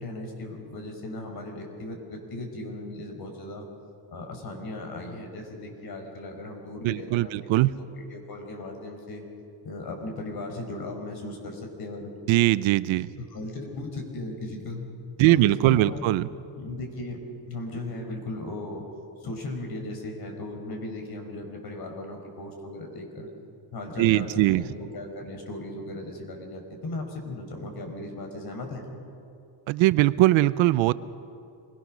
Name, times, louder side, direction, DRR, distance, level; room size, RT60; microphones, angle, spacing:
voice 1, 0.0-3.6 4.1-7.5 7.8-9.2 9.6-12.1 13.2-14.9 15.2-16.0 16.6-17.2 17.5-18.8 19.2-23.3 23.7-28.8, left 2 dB, 55° left, 3 dB, 5.2 m, -37 dB
voice 2, 6.8-7.8 12.3-13.1 15.2-16.3 24.0-24.6 29.7-30.9, right 17 dB, 85° right, 16 dB, 0.8 m, -21 dB
26.0 x 21.5 x 6.3 m, 2.6 s
cardioid pair, 115°, 46 cm